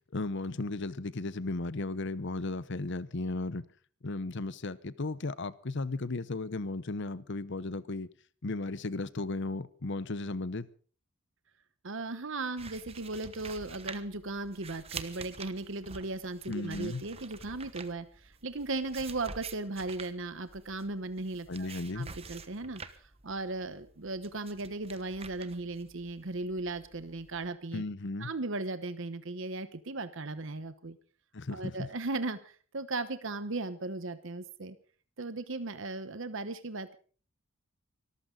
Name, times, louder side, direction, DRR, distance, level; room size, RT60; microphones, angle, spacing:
voice 1, 0.1-3.6 4.0-8.1 8.4-10.7 16.5-17.0 21.5-22.1 27.7-28.3 31.3-31.9, left 2 dB, 55° left, 0.8 m, -35 dB
voice 2, 11.8-21.7 21.9-27.8 28.2-31.0 31.5-34.8 35.2-36.9, right 2 dB, 60° right, 1.0 m, -37 dB
sound 1, 12.6-27.5, right 5 dB, 30° right, 1.1 m, -48 dB
24.0 x 14.0 x 3.9 m
head